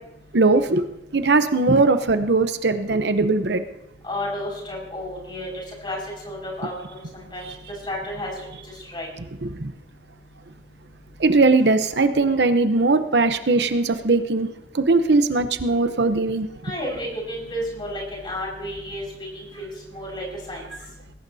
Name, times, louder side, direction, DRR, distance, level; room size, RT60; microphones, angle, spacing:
voice 1, 0.3-0.8 1.1-3.6 9.4-9.7 11.2-14.5 14.7-16.5, right 3 dB, 75° right, 9 dB, 0.8 m, -19 dB
voice 2, 4.0-5.5 5.8-6.0 6.2-6.7 7.3-7.4 7.9-8.3 8.9-9.1 16.6-19.0 19.3-20.6, left 1 dB, 25° left, -2 dB, 5.4 m, -31 dB
20.0 x 17.0 x 2.8 m, 0.89 s
head